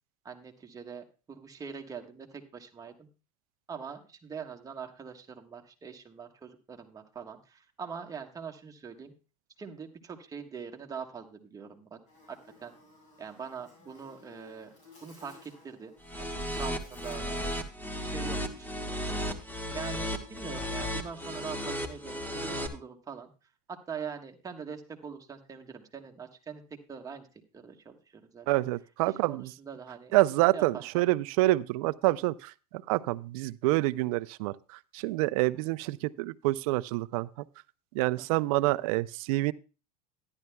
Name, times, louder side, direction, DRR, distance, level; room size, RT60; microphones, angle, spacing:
voice 1, 0.2-3.1 3.7-9.1 9.6-12.0 12.3-12.7 13.2-14.7 15.0-15.9 16.2-17.5 18.0-18.7 19.7-23.3 23.7-26.6 26.9-27.3 27.5-28.5 29.0-30.1 30.5-31.0 38.2-38.4, right 6 dB, 20° right, 1.3 m, -43 dB
Buzz, 12.1-17.7, left 3 dB, 40° left, 6.5 m, -57 dB
sound 1, 16.0-22.7, equal, 10° left, 1.2 m, -34 dB
voice 2, 28.5-29.5 30.1-37.3 37.9-39.5, right 19 dB, 70° right, 0.5 m, -27 dB
13.5 x 11.0 x 2.2 m
supercardioid pair, 130°, 19 cm